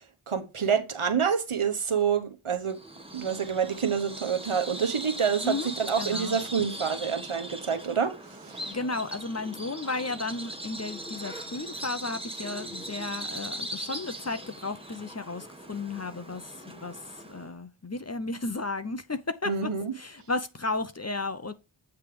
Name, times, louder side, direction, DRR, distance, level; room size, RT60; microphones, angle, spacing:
voice 1, 0.0-2.8 3.1-8.8 19.4-19.9, right 7 dB, 75° right, 1.2 m, -28 dB
Bird vocalization bird call bird song, 2.7-17.5, right 1 dB, 10° right, 1.5 m, -40 dB
voice 2, 6.0-6.4 8.7-21.5, left 3 dB, 30° left, 0.8 m, -34 dB
8.2 x 3.4 x 4.8 m
wide cardioid pair, 40°, 50 cm